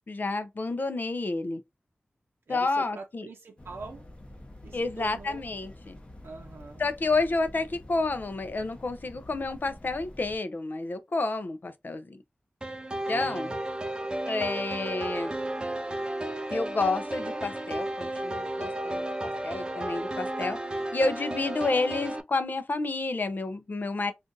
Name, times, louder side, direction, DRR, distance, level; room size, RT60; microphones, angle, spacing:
voice 1, 0.1-1.6 2.5-3.3 4.7-6.0 6.8-12.2 13.1-13.5 14.3-15.3 16.5-24.1, left 3 dB, 55° left, 0.5 m, -30 dB
voice 2, 2.5-4.1 4.6-5.5 6.2-6.8 13.1-13.6, right 4 dB, 80° right, 0.6 m, -44 dB
sound 1, 3.6-10.4, left 1 dB, 30° left, 0.9 m, -48 dB
sound 2, 12.6-22.2, right 1 dB, 20° right, 0.5 m, -33 dB
2.5 x 2.5 x 3.8 m
wide cardioid pair, 95°, 4 cm